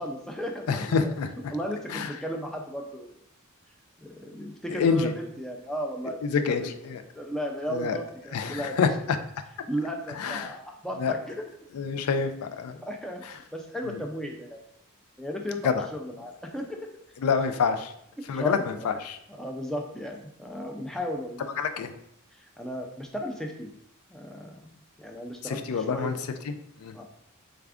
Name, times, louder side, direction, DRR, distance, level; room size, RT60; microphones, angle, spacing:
voice 1, 0.0-1.1 1.5-3.2 4.0-6.7 7.1-8.9 9.7-11.4 12.8-14.6 15.2-16.8 18.2-18.9 19.4-21.5 22.3-23.7 24.1-26.2 26.9-27.0, equal, ahead, 1 dB, 0.3 m, -35 dB
voice 2, 0.7-1.3 1.9-2.1 4.7-5.1 6.2-7.0 7.7-8.0 8.3-8.9 10.2-10.6 11.0-11.1 11.7-12.8 13.9-14.0 15.6-15.8 17.2-17.9 18.3-19.2 21.6-21.9 25.4-26.2 26.5-26.6 26.8-26.9, left 5 dB, 80° left, 8 dB, 0.4 m, -27 dB
3.4 x 2.4 x 3.4 m, 0.73 s
head